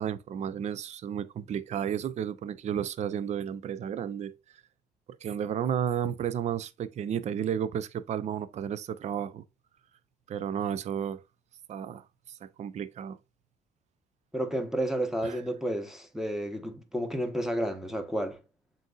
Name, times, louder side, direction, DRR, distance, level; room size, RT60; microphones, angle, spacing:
voice 1, 0.0-4.3 5.2-9.4 10.3-11.2 11.7-13.2 15.2-15.4, right 9 dB, 40° right, 0.5 m, -32 dB
voice 2, 14.3-18.4, right 1 dB, 5° right, 1.0 m, -31 dB
7.5 x 2.7 x 2.3 m
cardioid pair, 110°, 17 cm